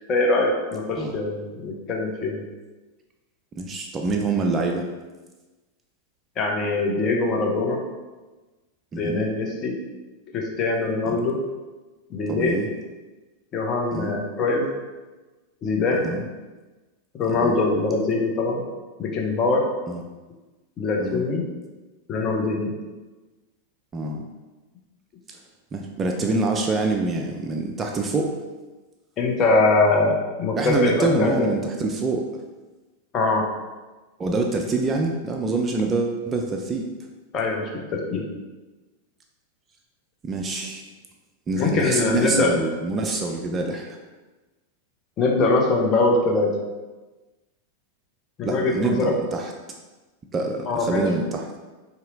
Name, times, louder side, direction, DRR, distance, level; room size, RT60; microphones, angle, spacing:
voice 1, 0.1-2.4 6.4-7.8 9.0-9.8 10.3-11.4 12.1-12.6 13.5-14.7 15.6-16.1 17.1-18.6 19.0-19.7 20.8-21.5 22.1-22.7 29.2-31.5 33.1-33.5 37.3-38.3 41.6-42.6 45.2-46.6 48.4-49.2 50.7-51.1, left 3 dB, 30° left, 0 dB, 0.6 m, -22 dB
voice 2, 3.6-4.9 8.9-9.3 11.1-11.2 12.3-12.7 13.9-14.1 16.0-16.2 17.3-17.6 19.9-20.0 21.0-21.2 23.9-24.2 25.3-25.4 25.7-28.3 30.5-32.4 34.2-36.9 40.2-40.8 41.5-44.0 48.4-49.5 50.3-51.5, right 3 dB, 20° right, 2 dB, 0.3 m, -26 dB
4.2 x 2.8 x 2.5 m, 1.2 s
figure-of-eight pair, 90°, 0 cm